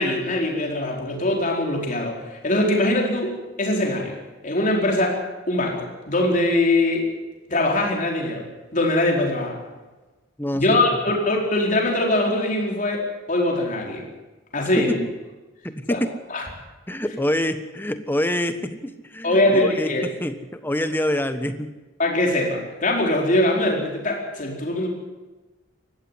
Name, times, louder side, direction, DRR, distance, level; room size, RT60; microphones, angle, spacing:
voice 1, 0.0-4.2 4.4-5.2 5.5-7.1 7.5-8.5 8.7-9.6 10.5-14.0 14.5-15.0 15.9-16.0 16.3-16.4 19.2-20.1 22.0-24.9, left 1 dB, 40° left, 0 dB, 4.5 m, -22 dB
voice 2, 10.4-10.8 14.8-15.0 15.6-16.1 16.9-21.7, left 1 dB, 10° left, 10 dB, 1.2 m, -26 dB
19.5 x 15.0 x 9.9 m, 1.2 s
head